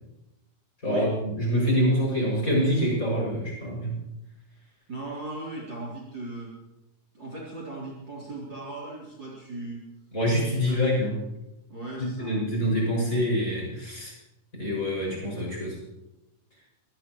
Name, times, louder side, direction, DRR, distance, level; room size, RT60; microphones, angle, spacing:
voice 1, 0.8-4.0 10.1-11.2 12.2-14.1 14.6-15.8, equal, 25° left, -4 dB, 6.7 m, -25 dB
voice 2, 4.9-6.5 7.1-9.8 10.5-10.9 11.7-12.3, right 2 dB, 35° right, -4 dB, 4.0 m, -37 dB
24.5 x 19.0 x 3.1 m, 0.92 s
omnidirectional pair, 3.7 m